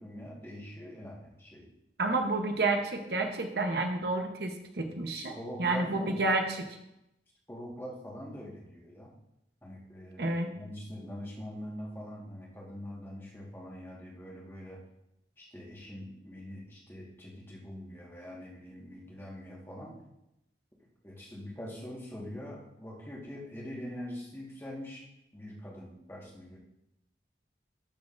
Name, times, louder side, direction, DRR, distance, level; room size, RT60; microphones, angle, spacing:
voice 1, 0.0-1.7 5.2-6.2 7.5-9.1 9.6-14.8 15.4-20.0 21.0-25.1 25.3-26.6, equal, 15° left, -3 dB, 1.4 m, -43 dB
voice 2, 2.0-6.6 10.2-10.5, right 2 dB, 65° right, 5 dB, 0.9 m, -30 dB
12.5 x 6.2 x 2.5 m, 0.86 s
head